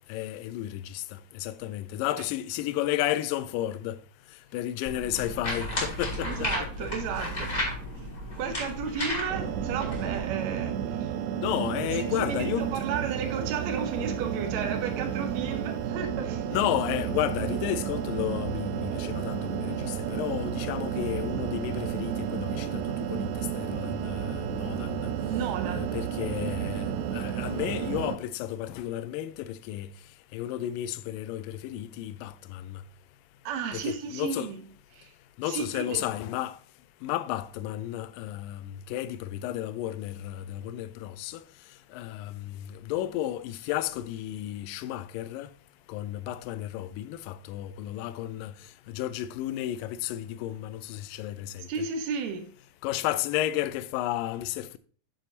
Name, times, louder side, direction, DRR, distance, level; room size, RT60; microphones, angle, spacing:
voice 1, 0.1-1.0 1.4-4.0 4.5-6.5 11.4-12.8 16.5-22.7 23.1-23.3 23.6-25.1 25.7-29.9 30.3-32.6 33.7-34.5 35.4-36.6 37.0-38.6 38.9-41.4 41.9-42.5 42.9-45.5 45.9-48.5 48.9-51.7 52.8-54.8, left 13 dB, 80° left, 2.1 m, -32 dB
sound 1, 4.8-10.2, left 1 dB, 20° left, 3.1 m, -33 dB
voice 2, 6.2-7.5 8.4-11.1 12.2-16.5 25.3-25.9 33.4-34.6 34.9-35.1 35.5-36.0 51.7-52.5, right 6 dB, 65° right, 1.9 m, -33 dB
sound 2, 9.3-28.2, right 9 dB, 85° right, 1.7 m, -32 dB
9.1 x 7.0 x 2.8 m
omnidirectional pair, 4.1 m